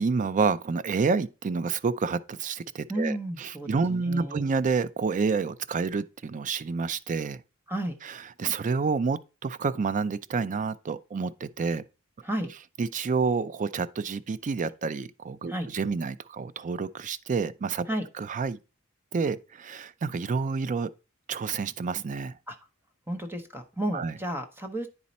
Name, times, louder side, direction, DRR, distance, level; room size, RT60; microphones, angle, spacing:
voice 1, 0.0-7.4 8.0-11.8 12.8-17.9 18.2-18.6 19.1-20.9 21.3-22.4 23.9-24.1, right 4 dB, 35° right, 0.4 m, -29 dB
voice 2, 2.9-4.5 7.7-8.0 12.2-12.5 15.5-15.7 17.9-18.1 22.5-22.6 23.1-24.9, right 1 dB, 10° right, 0.8 m, -32 dB
9.6 x 4.1 x 4.2 m
head